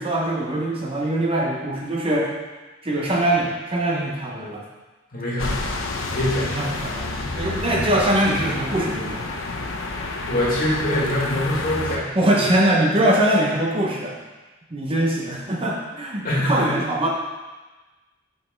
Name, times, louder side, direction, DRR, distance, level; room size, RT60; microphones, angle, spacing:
voice 1, 0.0-2.3 2.8-4.6 6.3-9.2 12.1-14.2 14.7-17.1, right 1 dB, 30° right, -2 dB, 0.9 m, -22 dB
voice 2, 5.1-5.6 6.1-6.6 10.3-12.1 16.2-16.7, left 1 dB, 45° left, -6 dB, 2.1 m, -24 dB
sound 1, 5.4-12.0, left 2 dB, 80° left, 0.8 m, -29 dB
5.9 x 5.5 x 4.5 m, 1.2 s
head